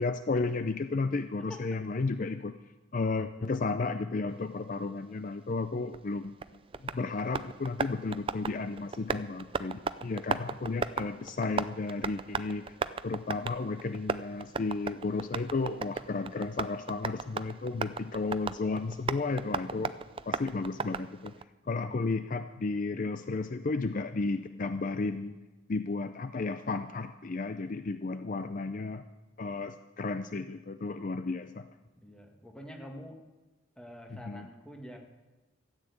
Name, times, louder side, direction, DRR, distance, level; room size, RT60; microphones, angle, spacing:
voice 1, 0.0-2.5 2.9-6.3 6.9-12.6 13.0-19.9 20.3-21.3 21.7-25.4 25.7-29.0 29.4-31.7 34.2-34.5, left 3 dB, 40° left, 10 dB, 0.5 m, -33 dB
voice 2, 1.5-1.8 4.7-5.2 9.5-9.8 21.6-22.0 32.0-33.2 33.8-35.0, equal, 5° left, 2 dB, 1.7 m, -48 dB
Tap, 5.9-21.4, right 5 dB, 25° right, 0.4 m, -37 dB
13.5 x 9.1 x 8.3 m, 1.1 s
head